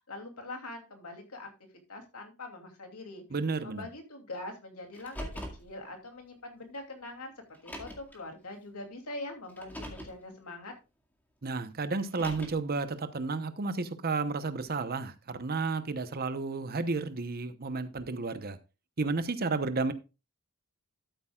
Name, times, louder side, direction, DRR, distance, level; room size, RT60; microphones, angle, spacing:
voice 1, 0.0-1.5 1.9-3.2 3.6-5.3 5.6-7.3 7.6-10.7, left 2 dB, 80° left, 2.8 m, -43 dB
voice 2, 3.3-3.9 11.4-18.6 19.0-19.9, right 3 dB, 45° right, 0.9 m, -32 dB
Car, 4.9-5.7 6.7-6.8 7.5-8.2 9.5-10.2 12.0-12.7, equal, 10° left, 2.0 m, -42 dB
12.5 x 8.7 x 2.4 m
head